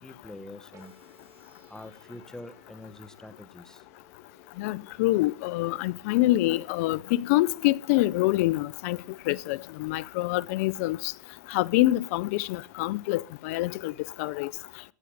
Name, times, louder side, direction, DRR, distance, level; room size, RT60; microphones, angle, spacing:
voice 1, 0.0-0.9 1.7-3.8, left 1 dB, 5° left, 1.1 m, -45 dB
sound 1, 0.7-8.7, right 3 dB, 35° right, 5.0 m, -62 dB
voice 2, 4.6-9.0 9.3-11.1 11.5-13.9 14.2-14.5, left 18 dB, 60° left, 0.7 m, -26 dB
15.0 x 11.0 x 5.0 m
hypercardioid pair, 115°, 9 cm